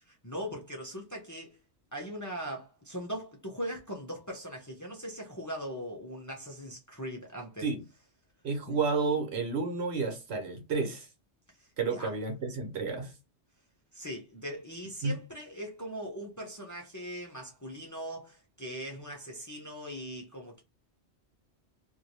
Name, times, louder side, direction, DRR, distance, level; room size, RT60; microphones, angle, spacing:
voice 1, 0.2-1.6 1.9-7.7 8.7-8.8 11.6-12.1 13.9-20.6, equal, 20° left, 0.6 m, -40 dB
voice 2, 8.4-11.1 11.8-13.1 15.0-15.2, right 4 dB, 70° right, 1.0 m, -31 dB
3.1 x 2.6 x 2.6 m
omnidirectional pair, 1.2 m